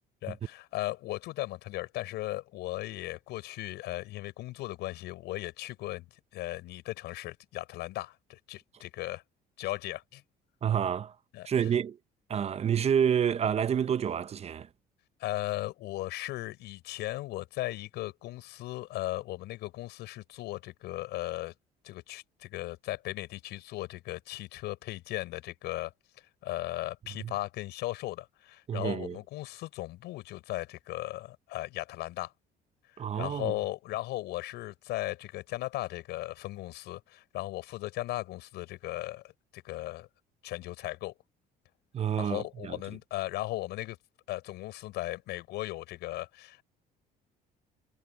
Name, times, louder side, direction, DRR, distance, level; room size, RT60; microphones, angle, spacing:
voice 1, 0.2-6.1 6.3-9.2 9.6-10.2 11.3-11.5 15.2-21.5 21.8-25.9 26.4-32.3 32.9-39.2 39.5-40.1 40.4-41.1 42.2-44.0 44.3-46.6, left 17 dB, 85° left, 6.5 m, -37 dB
voice 2, 10.6-11.1 11.4-12.0 12.3-14.7 27.2-27.3 28.7-29.2 33.0-33.5 41.9-42.8, right 8 dB, 40° right, 0.7 m, -28 dB
cardioid pair, 110°, 17 cm